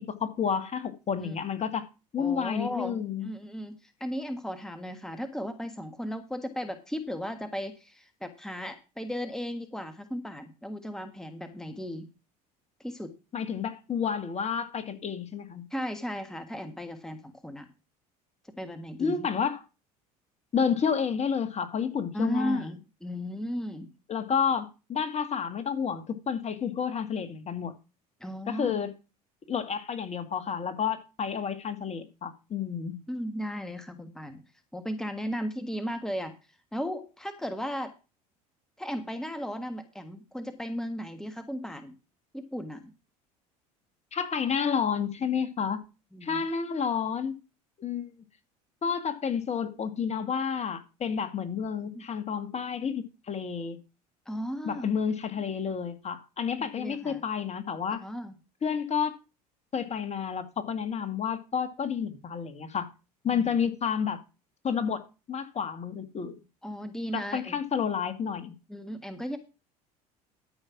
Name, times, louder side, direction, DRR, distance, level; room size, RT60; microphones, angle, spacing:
voice 1, 0.1-1.9 2.1-3.3 13.3-15.6 19.0-19.6 20.5-22.7 24.1-27.7 28.5-28.9 29.5-33.0 44.1-45.8 46.2-47.3 47.8-48.1 48.8-53.8 54.6-58.0 58.6-59.1 59.7-62.9 63.2-64.2 64.6-66.4 67.1-68.5, left 7 dB, 35° left, 2.0 m, -30 dB
voice 2, 2.2-12.1 12.8-13.1 15.7-17.7 18.6-19.3 22.1-23.9 28.2-28.7 33.1-34.4 34.7-36.3 36.7-37.9 38.8-41.9 42.3-42.9 46.1-46.4 51.9-52.0 54.2-54.9 56.8-57.2 58.0-58.3 63.3-63.5 66.6-67.6 68.7-69.4, equal, 5° left, 1.5 m, -35 dB
13.0 x 5.5 x 5.9 m
hypercardioid pair, 75°, 20 cm